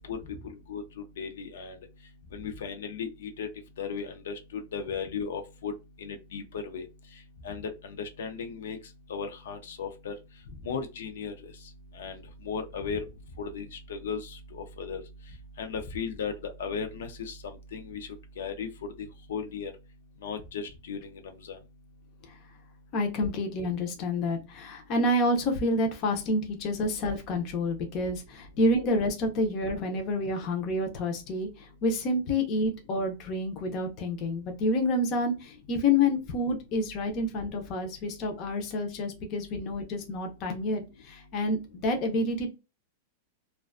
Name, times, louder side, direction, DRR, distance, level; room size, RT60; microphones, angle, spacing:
voice 1, 1.2-1.7 2.3-3.5 3.8-5.7 6.0-6.9 7.4-7.7 8.0-8.8 9.1-10.1 10.7-11.3 12.0-12.1 12.5-13.0 13.4-14.3 14.8-15.0 15.6-17.4 17.7-18.1 18.4-18.7 19.3-19.7 20.2-21.1, left 6 dB, 80° left, 0.5 m, -35 dB
voice 2, 22.9-42.5, left 1 dB, 30° left, 0.5 m, -28 dB
2.4 x 2.2 x 2.4 m
supercardioid pair, 170°, 0 cm